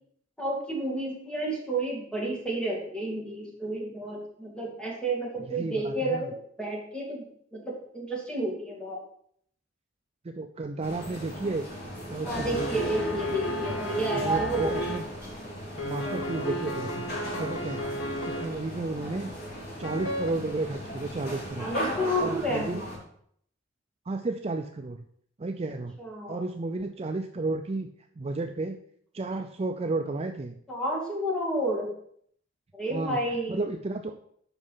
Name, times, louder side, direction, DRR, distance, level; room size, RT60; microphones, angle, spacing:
voice 1, 0.4-9.0 12.2-14.7 21.6-22.7 26.0-26.4 30.7-31.9 32.7-33.7, right 1 dB, 5° left, -3 dB, 2.4 m, -31 dB
voice 2, 5.5-6.3 10.2-11.7 12.1-12.8 14.2-15.0 15.8-19.3 19.8-21.7 22.2-22.8 24.1-25.0 25.4-26.0 26.3-28.8 29.1-30.6 32.9-34.2, right 2 dB, 30° right, 5 dB, 0.4 m, -33 dB
sound 1, 10.8-23.0, equal, 55° left, 3.3 m, -38 dB
sound 2, 12.3-15.0 15.8-18.4 19.8-20.3, equal, 70° left, 1.5 m, -33 dB
8.1 x 5.5 x 5.6 m, 0.66 s
head